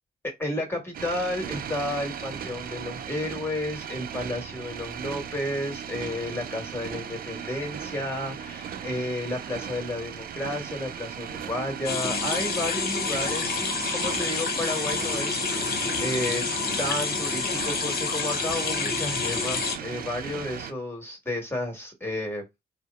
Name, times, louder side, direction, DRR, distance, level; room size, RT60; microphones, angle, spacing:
voice 1, 0.2-16.5 16.8-22.4, left 1 dB, 10° left, 1.5 m, -32 dB
sound 1, 0.9-20.7, right 8 dB, 45° right, 0.4 m, -37 dB
sound 2, 11.8-19.8, left 5 dB, 45° left, 0.8 m, -28 dB
2.6 x 2.0 x 2.3 m
hypercardioid pair, 45°, 21 cm